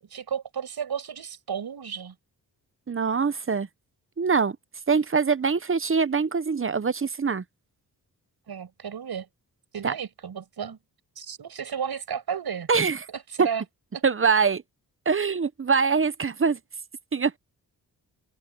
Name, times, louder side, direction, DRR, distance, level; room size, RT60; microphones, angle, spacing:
voice 1, 0.1-2.1 8.5-9.3 9.7-10.8 11.2-12.7 13.1-13.6 13.9-14.0, right 7 dB, 75° right, 7.8 m, -33 dB
voice 2, 2.9-3.7 4.2-4.6 4.9-7.4 9.8-9.9 12.7-13.0 13.4-13.5 14.0-14.6 15.1-16.6 17.1-17.4, right 5 dB, 35° right, 0.9 m, -23 dB
cardioid pair, 75°, 38 cm